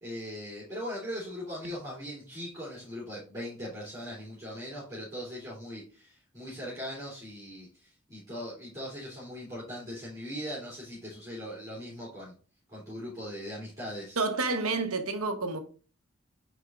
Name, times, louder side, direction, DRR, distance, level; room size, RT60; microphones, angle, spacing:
voice 1, 0.0-12.3 12.7-14.2, equal, 15° right, 3.0 m, -40 dB
voice 2, 14.2-15.6, right 3 dB, 85° right, 1.1 m, -29 dB
9.4 x 4.4 x 2.5 m
head